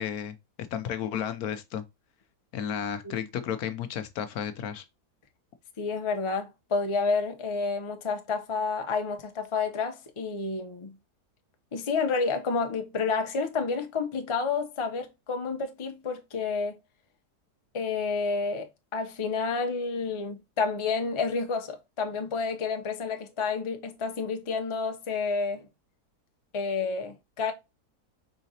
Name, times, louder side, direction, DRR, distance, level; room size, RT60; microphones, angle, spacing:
voice 1, 0.0-1.8 2.5-4.8, left 9 dB, 70° left, 1.0 m, -33 dB
voice 2, 5.8-10.9 11.7-16.8 17.7-18.7 18.9-25.7 26.5-27.5, left 4 dB, 30° left, 0.5 m, -30 dB
4.8 x 3.8 x 2.7 m
omnidirectional pair, 1.8 m